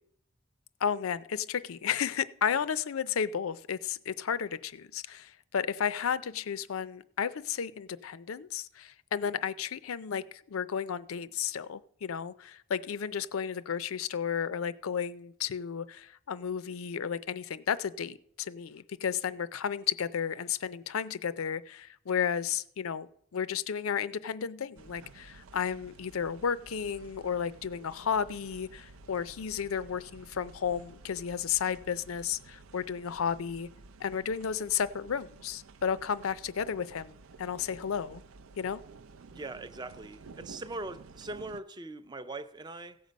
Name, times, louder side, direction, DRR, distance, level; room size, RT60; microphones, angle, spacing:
voice 1, 0.8-33.7 34.0-38.2 38.6-38.8, left 7 dB, 85° left, 0.5 m, -33 dB
sound 1, 24.8-41.6, right 4 dB, 85° right, 0.5 m, -53 dB
voice 2, 39.3-43.0, right 2 dB, 20° right, 0.5 m, -41 dB
16.0 x 6.7 x 5.1 m
head